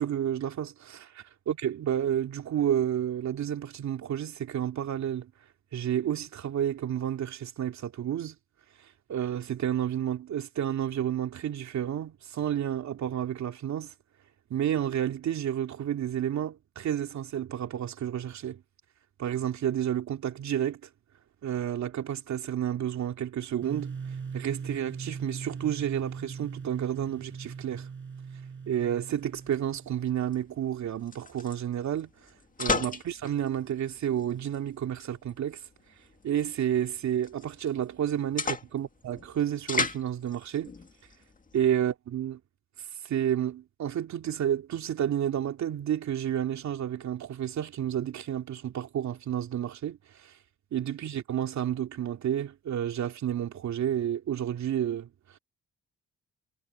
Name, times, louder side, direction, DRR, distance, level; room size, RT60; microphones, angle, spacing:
voice 1, 0.0-5.3 5.7-8.4 8.8-13.9 14.5-18.6 19.2-20.9 21.4-23.9 24.3-27.9 28.7-32.1 32.6-35.6 36.2-40.7 41.5-42.4 43.0-50.4 50.7-55.4, right 10 dB, 65° right, 2.9 m, -30 dB
sound 1, 23.6-30.4, right 6 dB, 40° right, 5.8 m, -40 dB
sound 2, 29.2-41.7, left 4 dB, 25° left, 2.0 m, -37 dB
cardioid pair, 90°, 30 cm